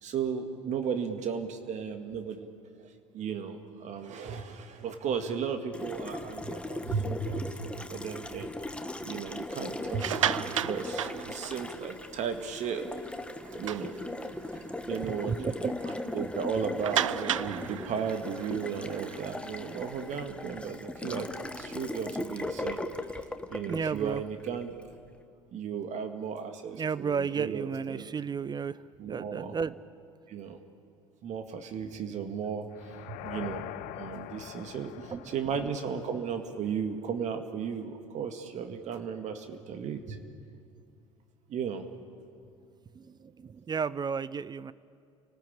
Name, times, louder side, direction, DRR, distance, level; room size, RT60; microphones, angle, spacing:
voice 1, 0.0-2.5 2.8-2.9 3.1-8.5 9.0-12.8 13.6-13.9 14.5-15.5 16.1-21.3 21.6-22.8 23.5-24.7 25.5-28.1 29.0-29.6 30.3-30.6 31.2-33.7 34.0-40.2 41.5-41.8, right 6 dB, 45° right, 7 dB, 2.0 m, -35 dB
Water tap faucet, 5.7-24.9, left 2 dB, 5° left, 1.6 m, -38 dB
sound 1, 9.8-12.0 12.4-12.6 13.0-13.1 13.5-14.5 15.0-15.1 15.4-15.5 16.8-20.2, right 11 dB, 80° right, 0.5 m, -33 dB
voice 2, 15.0-15.7 23.7-24.2 26.7-28.8 29.1-29.8 34.5-34.7 35.1-35.2 43.0-44.7, right 6 dB, 25° right, 18 dB, 0.7 m, -33 dB
sound 2, 32.7-36.8, left 14 dB, 60° left, 1.0 m, -44 dB
29.5 x 19.0 x 8.8 m, 2.4 s
figure-of-eight pair, 65°, 16 cm